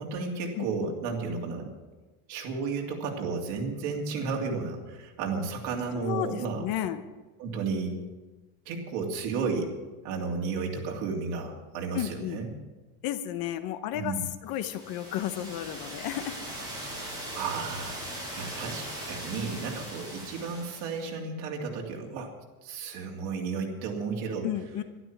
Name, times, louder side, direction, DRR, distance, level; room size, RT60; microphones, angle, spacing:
voice 1, 0.0-1.7 2.3-6.6 7.4-8.0 8.6-9.8 10.0-12.5 13.9-14.2 17.3-22.3 22.6-24.5, right 4 dB, 55° right, 1 dB, 3.1 m, -33 dB
voice 2, 5.9-7.0 11.9-12.4 13.0-14.1 14.4-16.4 24.4-24.8, left 12 dB, 50° left, 11 dB, 1.0 m, -32 dB
sound 1, 14.6-21.1, right 1 dB, 10° right, 6.6 m, -40 dB
12.0 x 12.0 x 7.4 m, 1.2 s
cardioid pair, 160°, 47 cm